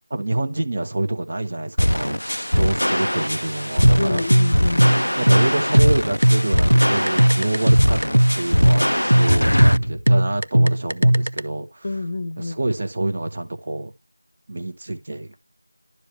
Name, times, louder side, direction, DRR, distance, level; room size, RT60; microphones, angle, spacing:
voice 1, 0.1-4.3 4.6-4.7 5.2-8.0 8.4-11.9 12.4-13.9 14.5-15.4, right 2 dB, 30° right, 1.2 m, -27 dB
sound 1, 1.8-9.8, equal, 90° left, 0.4 m, -21 dB
sound 2, 3.8-11.4, right 1 dB, 80° right, 0.7 m, -17 dB
voice 2, 4.0-5.0 11.8-12.6, left 2 dB, 30° left, 0.9 m, -27 dB
12.0 x 4.9 x 3.2 m
figure-of-eight pair, 175°, 0 cm